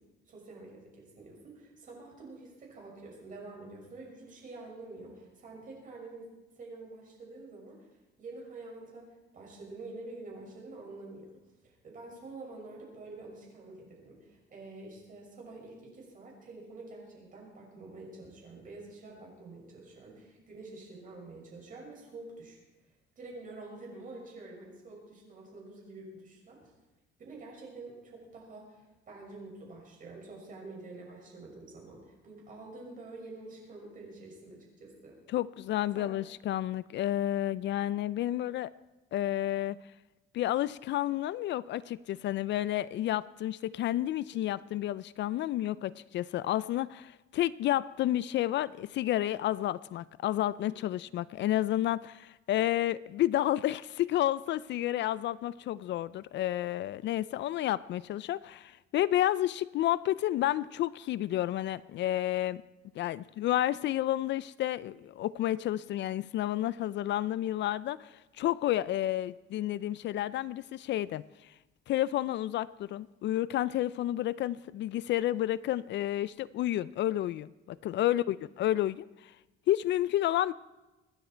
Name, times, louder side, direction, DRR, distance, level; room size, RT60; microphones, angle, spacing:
voice 1, 0.3-7.8 8.2-11.3 11.6-22.6 23.2-26.6 27.2-35.2 35.9-36.1 44.3-44.5 50.5-50.8 78.2-78.3, right 2 dB, 40° right, -1 dB, 6.2 m, -47 dB
voice 2, 35.3-38.7 39.1-39.8 40.3-62.6 63.0-71.2 71.9-79.1 79.7-80.5, left 13 dB, 60° left, 18 dB, 0.4 m, -30 dB
25.5 x 10.0 x 4.5 m, 1.1 s
cardioid pair, 160°, 21 cm